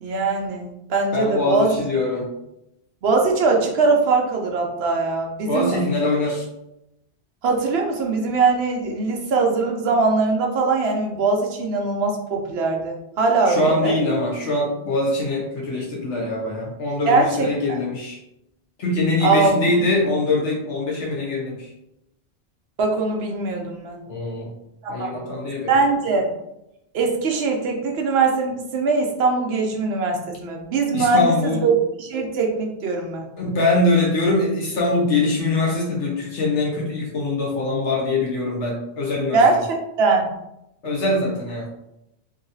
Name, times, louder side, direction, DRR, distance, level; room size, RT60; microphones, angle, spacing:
voice 1, 0.0-1.7 3.0-5.8 7.4-13.9 17.1-17.8 19.2-19.9 22.8-24.0 24.8-25.2 25.7-26.3 26.9-33.3 39.3-39.7 40.0-40.3, right 4 dB, 70° right, 1 dB, 0.9 m, -21 dB
voice 2, 1.1-2.3 5.5-6.4 13.5-18.2 18.8-21.6 24.1-24.5 24.9-25.7 30.9-31.7 33.4-39.4 40.8-41.7, left 2 dB, 80° left, -3 dB, 1.3 m, -23 dB
2.9 x 2.8 x 2.7 m, 0.85 s
omnidirectional pair, 1.2 m